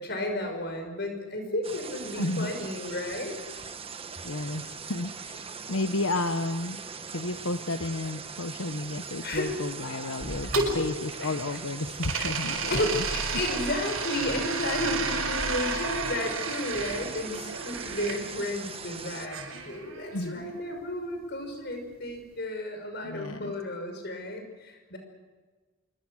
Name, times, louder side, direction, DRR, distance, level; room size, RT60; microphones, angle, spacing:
voice 1, 0.0-3.4 9.2-9.6 10.4-10.8 11.2-11.3 12.1-12.3 12.7-19.4 19.7-25.0, left 1 dB, 50° left, 5 dB, 5.8 m, -32 dB
sound 1, 1.6-19.3, right 5 dB, 25° right, 1.4 m, -41 dB
voice 2, 2.2-2.5 4.2-5.4 5.7-6.8 7.1-10.5 10.7-13.0 20.1-20.5 23.0-23.5, left 2 dB, 80° left, 8 dB, 1.1 m, -32 dB
sound 2, 10.2-11.6 12.0-18.2 19.3-20.4, right 4 dB, 85° right, 6.4 m, -33 dB
26.5 x 24.0 x 6.5 m, 1.3 s
head